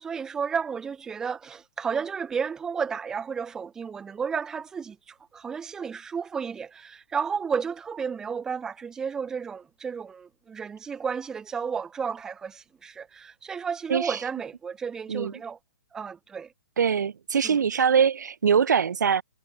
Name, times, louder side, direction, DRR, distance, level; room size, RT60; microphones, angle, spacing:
voice 1, 0.0-15.6 15.9-16.5 17.4-17.6, right 6 dB, 5° right, 0.5 m, -32 dB
voice 2, 16.8-19.2, right 7 dB, 70° right, 3.0 m, -23 dB
hypercardioid pair, 170°, 10 cm